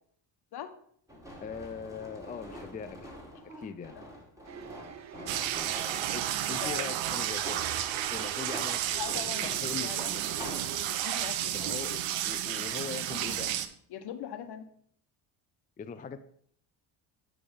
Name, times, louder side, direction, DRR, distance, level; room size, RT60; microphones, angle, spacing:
sound 1, 1.1-6.1 6.9-7.8 8.4-10.7, equal, 5° right, 2.4 m, -45 dB
voice 1, 1.4-3.1 3.4-4.0 6.1-7.7 8.1-8.8 9.1-10.3 11.5-13.6 15.8-16.2, left 6 dB, 20° left, 9 dB, 0.4 m, -41 dB
sound 2, 4.4-10.9, right 8 dB, 35° right, 0.6 m, -47 dB
voice 2, 5.2-5.5 6.6-6.9 9.0-10.0 10.9-11.8 13.9-14.7, left 9 dB, 55° left, 8 dB, 1.1 m, -41 dB
sound 3, 5.3-13.7, right 11 dB, 80° right, 0.7 m, -32 dB
8.9 x 3.5 x 5.2 m, 0.64 s
supercardioid pair, 80°, 46 cm